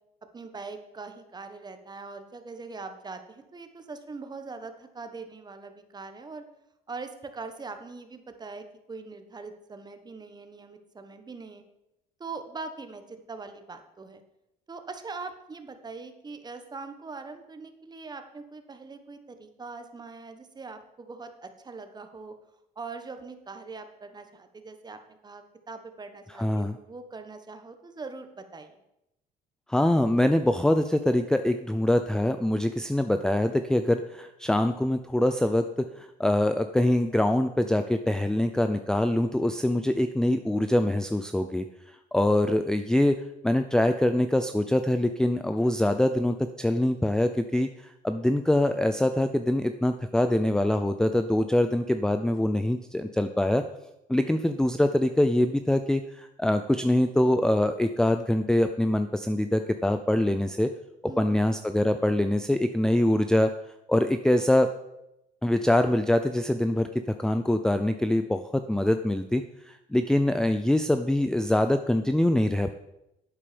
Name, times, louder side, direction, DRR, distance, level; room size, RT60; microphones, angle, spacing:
voice 1, 0.3-6.4 6.9-11.6 12.2-14.2 14.7-22.3 22.7-28.7 61.1-61.4, right 4 dB, 25° right, 8 dB, 1.4 m, -42 dB
voice 2, 26.4-26.8 29.7-35.7 36.0-53.6 54.1-60.7 61.2-63.5 63.9-64.7 65.4-66.9 67.2-72.7, left 1 dB, 5° left, 8 dB, 0.5 m, -24 dB
11.5 x 8.7 x 5.2 m, 0.87 s
cardioid pair, 110°, 17 cm